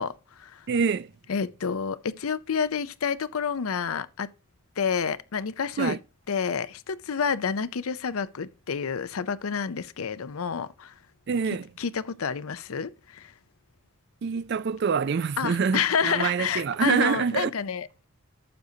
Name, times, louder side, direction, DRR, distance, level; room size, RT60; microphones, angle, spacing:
voice 1, 0.0-0.7 1.3-4.3 4.8-6.0 6.3-11.0 11.8-13.3 15.4-18.0, left 6 dB, 80° left, 0.6 m, -29 dB
voice 2, 0.7-1.1 5.8-6.0 11.3-11.7 14.2-17.5, right 6 dB, 50° right, 0.4 m, -26 dB
12.0 x 7.9 x 2.8 m
head